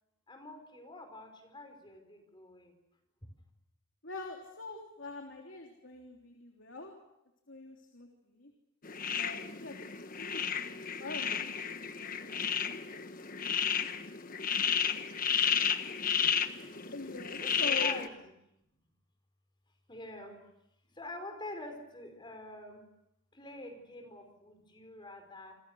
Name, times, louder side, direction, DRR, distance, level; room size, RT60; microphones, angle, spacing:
voice 1, 0.3-2.7 17.4-18.1 19.9-20.4 20.9-22.9 23.3-25.5, left 1 dB, 25° left, 6 dB, 4.7 m, -46 dB
voice 2, 4.0-6.9 7.5-8.5 9.2-9.8 10.1-13.1 16.9-18.0, left 3 dB, 65° left, 2 dB, 3.4 m, -44 dB
sound 1, 8.8-18.1, left 7 dB, 40° left, 1.3 m, -32 dB
28.0 x 27.0 x 6.5 m, 0.85 s
head